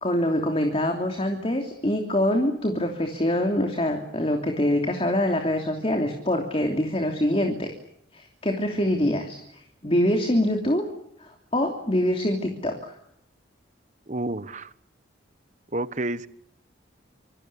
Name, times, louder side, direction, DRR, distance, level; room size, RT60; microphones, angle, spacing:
voice 1, 0.0-7.7 8.1-10.8 11.2-12.9, left 1 dB, 30° left, 4 dB, 3.1 m, -25 dB
voice 2, 14.1-14.7 15.7-16.3, right 2 dB, 40° right, 14 dB, 1.2 m, -29 dB
27.0 x 25.5 x 7.0 m, 0.75 s
head